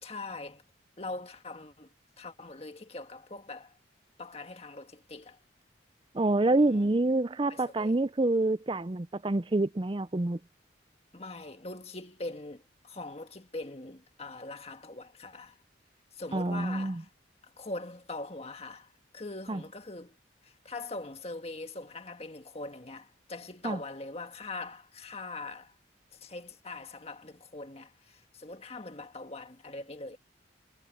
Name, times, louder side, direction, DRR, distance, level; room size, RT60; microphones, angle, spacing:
voice 1, 0.0-0.6 1.0-1.9 2.2-3.8 4.2-5.4 6.6-6.9 7.5-8.0 11.1-15.6 16.1-17.1 17.4-20.2 20.4-25.8 26.1-30.2, left 2 dB, 30° left, 1.6 m, -42 dB
voice 2, 6.1-10.4 16.3-17.0 19.5-19.6 23.6-23.8, right 2 dB, 25° right, 0.5 m, -27 dB
head